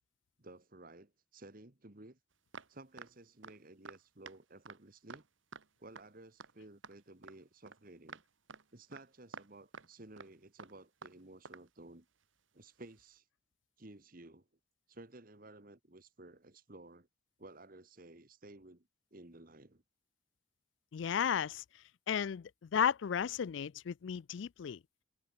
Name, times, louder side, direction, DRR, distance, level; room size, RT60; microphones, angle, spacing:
voice 1, 0.4-2.2 2.7-5.3 5.8-8.2 8.7-12.1 12.5-13.2 13.8-14.5 14.9-17.1 17.4-19.8, right 2 dB, 45° right, 1.6 m, -55 dB
sound 1, 2.5-3.1 3.4-3.6 3.9-4.0 4.3-4.4 4.7-4.8 5.1-5.2 5.5-5.7 6.0-6.1 6.4-6.5 6.8-7.4 7.7-7.8 8.1-8.2 8.5-8.7 8.9-9.1 9.3-9.9 10.2-10.3 10.6-11.2 11.5-11.7 12.9-13.0, right 5 dB, 75° right, 1.6 m, -50 dB
voice 2, 20.9-21.6 22.1-24.8, left 8 dB, 70° left, 0.4 m, -34 dB
head